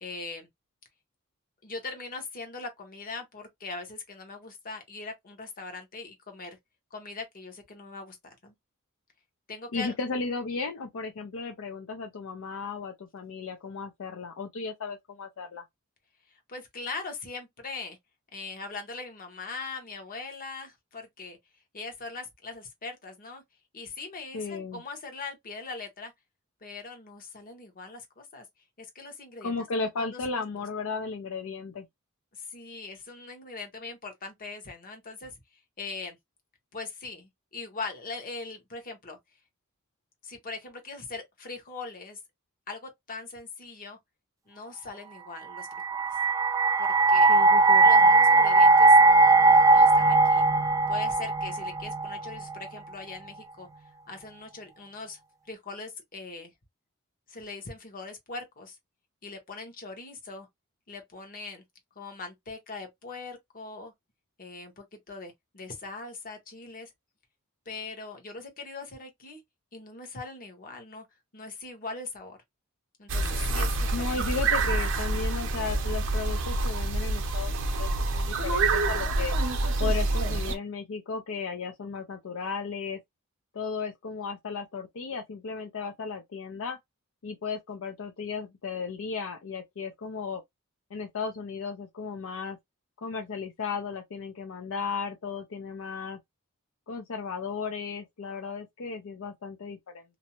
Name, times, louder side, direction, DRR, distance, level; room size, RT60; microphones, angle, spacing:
voice 1, 0.0-0.5 1.6-6.6 6.9-8.5 9.5-9.9 16.5-18.0 18.3-21.4 21.7-23.4 23.7-26.1 26.6-28.4 28.8-30.6 32.3-35.3 35.8-36.2 36.7-39.2 40.2-42.2 42.7-44.0 44.5-45.7 46.8-47.4 47.8-50.4 50.9-53.7 54.1-55.2 55.5-56.5 57.3-58.8 59.2-60.5 60.9-61.6 62.0-63.9 64.4-66.9 67.7-69.4 69.7-71.1 71.3-72.4 73.0-74.2, left 3 dB, 40° left, 1.0 m, -41 dB
voice 2, 9.7-15.6 24.3-24.8 29.4-31.8 47.3-47.9 73.9-79.3 79.8-83.0 83.5-86.8 87.2-90.4 90.9-92.6 93.0-96.2 96.9-100.0, left 4 dB, 65° left, 0.5 m, -35 dB
sound 1, 45.6-52.7, right 3 dB, 15° right, 0.3 m, -19 dB
sound 2, 73.1-80.6, right 2 dB, 60° right, 0.6 m, -27 dB
2.6 x 2.0 x 2.9 m
head